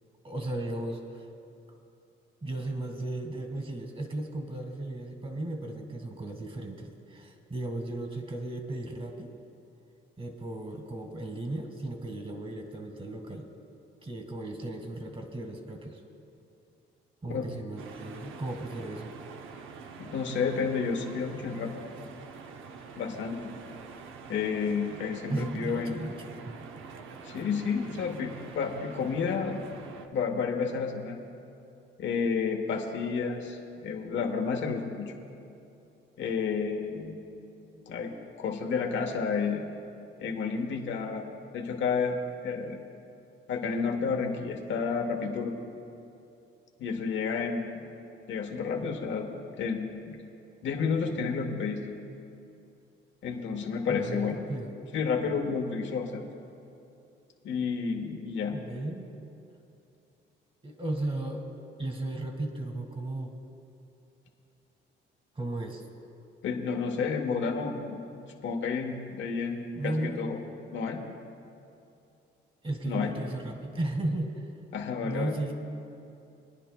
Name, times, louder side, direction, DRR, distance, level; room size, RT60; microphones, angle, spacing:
voice 1, 0.2-1.3 2.4-9.3 10.2-13.5 14.0-16.0 17.2-19.1 25.3-26.6 53.9-54.7 58.5-59.0 60.6-61.5 61.8-63.3 65.3-65.8 69.7-70.3 72.6-74.5 75.0-75.5, right 2 dB, 30° right, 4 dB, 1.7 m, -35 dB
sound 1, 17.8-30.1, right 5 dB, 85° right, 0.7 m, -46 dB
voice 2, 20.0-21.8 23.0-23.5 24.3-26.0 27.2-29.6 30.1-31.2 32.0-35.1 36.2-37.2 37.8-38.1 38.4-39.6 40.2-41.3 41.5-42.2 42.4-42.8 43.5-45.5 46.8-47.9 48.3-49.3 49.6-50.2 50.6-51.8 53.2-54.5 54.9-56.2 57.4-58.6 66.4-68.0 68.4-70.4 70.7-71.0 72.8-73.1 74.7-75.4, left 5 dB, 70° left, 3 dB, 1.1 m, -31 dB
24.0 x 10.0 x 2.2 m, 2.6 s
cardioid pair, 90°, 20 cm